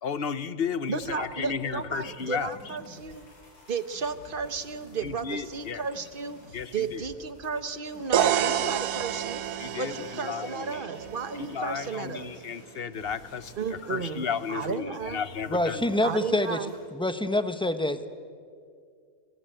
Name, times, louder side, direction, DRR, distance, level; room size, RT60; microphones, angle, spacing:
voice 1, 0.0-2.5 5.0-5.8 6.5-7.0 8.2-8.3 8.6-8.8 9.6-10.0 10.2-10.9 11.4-13.5 13.9-15.8, left 6 dB, 45° left, 14 dB, 1.0 m, -33 dB
sound 1, 0.9-16.9, equal, 80° left, 7.8 m, -51 dB
voice 2, 0.9-3.3 3.7-9.4 9.8-12.3 13.6-15.2 16.0-16.7, right 5 dB, 35° right, 11 dB, 1.2 m, -33 dB
sound 2, 8.1-12.0, right 10 dB, 75° right, 1.4 m, -29 dB
voice 3, 15.5-16.6 16.9-18.0, left 1 dB, 5° left, 9 dB, 1.1 m, -26 dB
26.5 x 24.0 x 9.0 m, 2.2 s
omnidirectional pair, 1.6 m